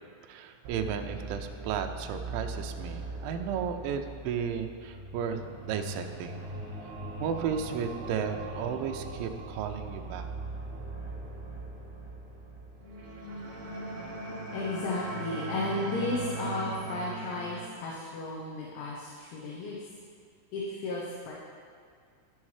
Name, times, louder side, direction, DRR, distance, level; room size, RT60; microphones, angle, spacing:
voice 1, 0.3-6.4 7.2-10.3, right 7 dB, 90° right, 5 dB, 2.6 m, -34 dB
sound 1, 0.6-17.6, right 3 dB, 70° right, 3.3 m, -40 dB
voice 2, 14.5-19.8 20.5-21.3, left 2 dB, 75° left, -4 dB, 2.9 m, -34 dB
11.0 x 7.3 x 3.2 m, 2.2 s
omnidirectional pair, 5.9 m